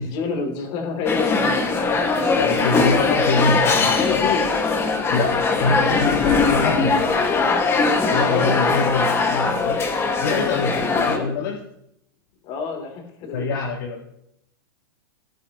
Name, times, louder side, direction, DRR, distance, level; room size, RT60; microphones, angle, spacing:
voice 1, 0.0-1.4 2.9-3.2 3.6-4.5 5.6-5.8 8.1-8.7 10.9-11.3 12.4-13.6, left 5 dB, 45° left, 3 dB, 3.5 m, -28 dB
sound 1, 1.1-11.2, left 4 dB, 20° left, 2.0 m, -20 dB
voice 2, 1.8-4.3 5.1-7.0 7.7-9.8 10.2-11.6 13.3-14.0, left 3 dB, 60° left, 0 dB, 1.9 m, -25 dB
19.0 x 9.9 x 3.1 m, 0.76 s
hypercardioid pair, 120°, 12 cm